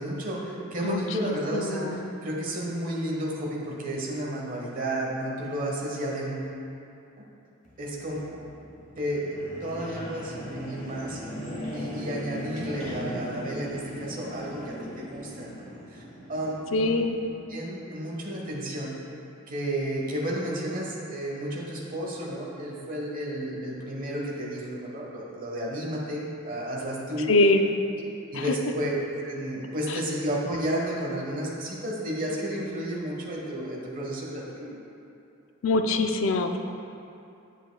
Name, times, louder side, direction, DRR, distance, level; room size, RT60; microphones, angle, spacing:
voice 1, 0.0-6.4 7.8-8.6 9.0-11.2 11.7-16.0 16.3-16.9 17.5-19.0 19.5-27.3 28.3-34.8, right 1 dB, 40° right, -3 dB, 1.2 m, -32 dB
voice 2, 0.8-2.1 16.7-17.2 27.3-27.6 28.3-28.4 29.9-30.0 35.6-36.6, left 2 dB, 65° left, 6 dB, 0.4 m, -24 dB
sound 1, 7.6-17.4, left 1 dB, 35° left, 1.4 m, -39 dB
8.1 x 7.7 x 2.3 m, 2.6 s
head